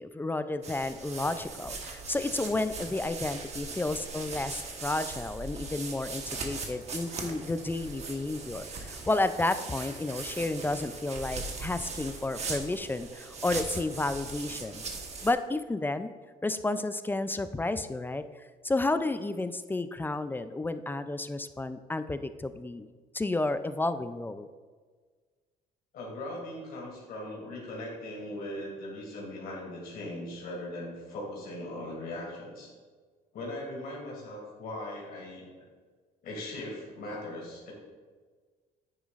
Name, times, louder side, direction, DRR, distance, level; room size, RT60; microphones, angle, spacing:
voice 1, 0.0-14.8 15.2-16.1 16.4-22.9 23.1-24.5, left 2 dB, 10° left, 11 dB, 0.4 m, -31 dB
sound 1, 0.6-15.3, right 4 dB, 40° right, 1.2 m, -39 dB
voice 2, 25.9-32.7 33.3-35.5 36.2-37.7, left 1 dB, 65° left, -3 dB, 2.5 m, -39 dB
9.6 x 9.3 x 2.5 m, 1.5 s
cardioid pair, 110°, 17 cm